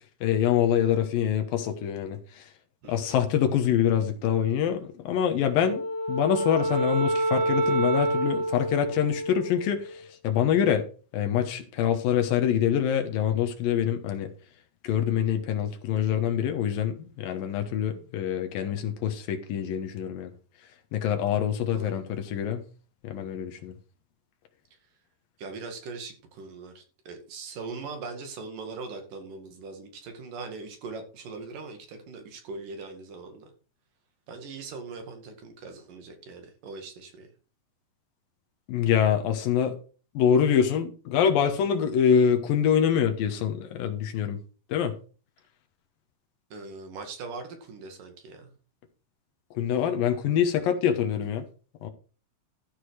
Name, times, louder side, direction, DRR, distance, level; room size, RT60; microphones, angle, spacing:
voice 1, 0.2-2.4 2.9-10.9 11.1-14.3 14.8-20.3 20.9-22.6 23.0-23.7 38.7-39.7 40.1-44.4 44.7-44.9 49.6-51.4 51.8-51.9, left 8 dB, 80° left, 2.9 m, -25 dB
voice 2, 2.8-3.2 21.7-22.0 25.4-33.5 34.3-37.3 46.5-48.5, right 4 dB, 70° right, 3.8 m, -41 dB
Wind instrument woodwind instrument, 5.5-10.0, right 1 dB, 85° right, 3.6 m, -28 dB
13.5 x 6.8 x 4.8 m
omnidirectional pair, 4.1 m